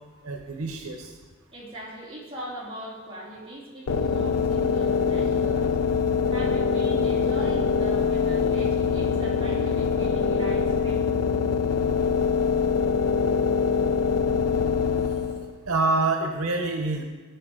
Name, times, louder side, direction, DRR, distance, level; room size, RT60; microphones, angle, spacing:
voice 1, 0.2-1.1 15.7-17.0, right 3 dB, 90° right, 4 dB, 0.9 m, -26 dB
voice 2, 1.5-5.8 6.3-11.0, equal, 25° right, -7 dB, 3.0 m, -39 dB
sound 1, 3.9-15.6, left 5 dB, 80° left, 0.4 m, -24 dB
15.5 x 5.3 x 3.8 m, 1.4 s
head